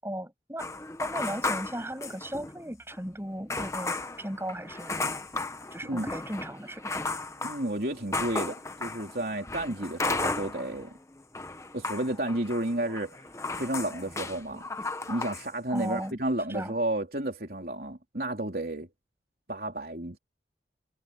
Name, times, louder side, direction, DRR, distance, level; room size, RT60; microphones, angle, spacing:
voice 1, 0.0-0.7 1.0-5.1 5.7-7.1 15.7-16.2 16.5-16.7, right 1 dB, 15° right, 7.3 m, -36 dB
sound 1, 0.6-2.6 2.9-3.0 3.5-10.9 11.2-15.5 15.8-16.1, left 3 dB, 15° left, 1.1 m, -35 dB
voice 2, 7.4-10.9 11.7-13.2 13.6-14.6 15.1-18.9 19.5-20.2, right 1 dB, 55° right, 3.6 m, -32 dB
head